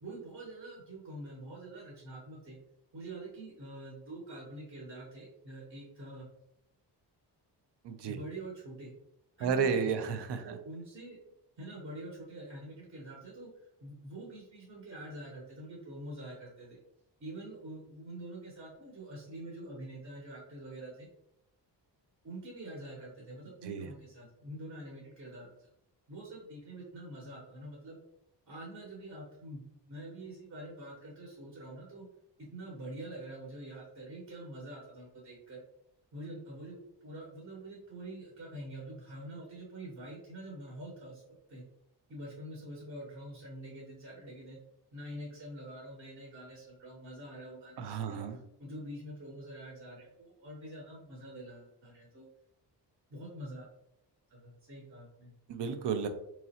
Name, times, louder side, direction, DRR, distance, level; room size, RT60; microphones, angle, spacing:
voice 1, 0.0-2.6 2.9-6.3 8.1-8.9 9.4-10.1 10.4-11.3 11.6-16.8 17.2-21.1 22.2-25.7 26.1-28.0 28.5-32.1 32.4-35.6 36.1-41.2 41.5-41.6 42.1-44.6 44.9-48.2 48.6-52.3 53.1-53.7 54.3-55.3, right 1 dB, 40° right, -3 dB, 0.9 m, -46 dB
voice 2, 7.8-8.2 9.4-10.6 23.6-23.9 47.8-48.4 55.5-56.1, right 6 dB, 70° right, 9 dB, 0.6 m, -32 dB
3.7 x 3.0 x 2.8 m, 0.81 s
wide cardioid pair, 160°, 43 cm